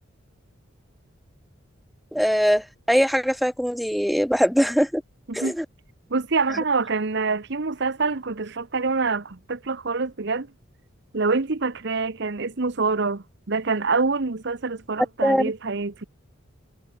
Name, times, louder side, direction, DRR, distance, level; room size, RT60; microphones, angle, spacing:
voice 1, 2.1-5.0 5.3-5.6 15.0-15.5, equal, ahead, 1.3 m, -22 dB
voice 2, 6.1-10.5 11.1-16.0, right 4 dB, 60° right, 1.0 m, -26 dB
head